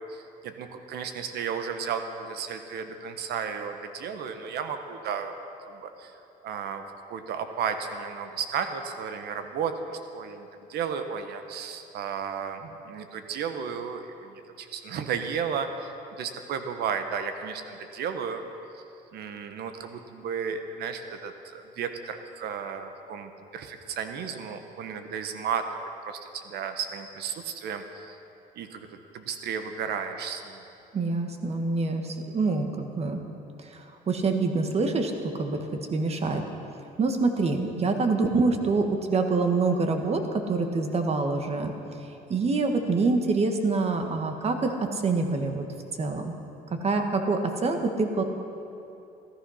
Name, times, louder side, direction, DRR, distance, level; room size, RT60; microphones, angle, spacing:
voice 1, 0.0-6.2 6.4-18.4 19.1-28.2 28.6-30.6, right 6 dB, 70° right, 7 dB, 1.3 m, -34 dB
voice 2, 30.9-33.2 33.6-35.1 35.4-35.6 35.9-36.4 37.0-40.2 40.5-41.7 42.3-45.6 46.0-46.3 46.7-48.2, right 3 dB, 40° right, 5 dB, 1.5 m, -26 dB
14.5 x 13.5 x 5.7 m, 2.9 s
cardioid pair, 110°, 17 cm